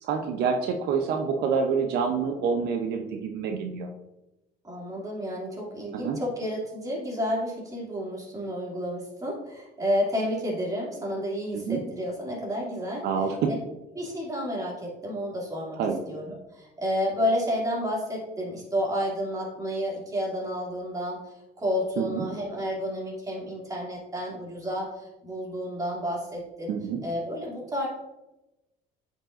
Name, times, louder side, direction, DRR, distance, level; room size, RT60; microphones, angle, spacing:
voice 1, 0.0-3.9 5.9-6.2 11.5-11.8 13.0-13.5 15.8-16.0 22.0-22.2 26.7-27.0, right 6 dB, 75° right, 4 dB, 0.7 m, -27 dB
voice 2, 4.6-13.1 13.5-13.6 14.0-15.8 16.1-21.2 21.6-26.7 27.0-27.9, equal, 20° right, -3 dB, 2.5 m, -30 dB
8.7 x 5.4 x 2.5 m, 0.96 s
cardioid pair, 110°, 17 cm